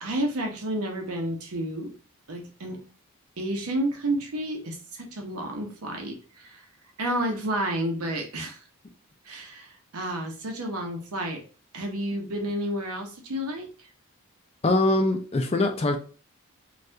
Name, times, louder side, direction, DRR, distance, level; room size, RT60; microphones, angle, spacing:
voice 1, 0.0-1.9 2.3-2.8 3.4-8.6 9.2-11.4 11.7-13.9, right 1 dB, 80° right, 2 dB, 0.8 m, -31 dB
voice 2, 14.6-16.0, left 2 dB, 25° left, 5 dB, 0.4 m, -23 dB
2.6 x 2.4 x 3.3 m, 0.37 s
head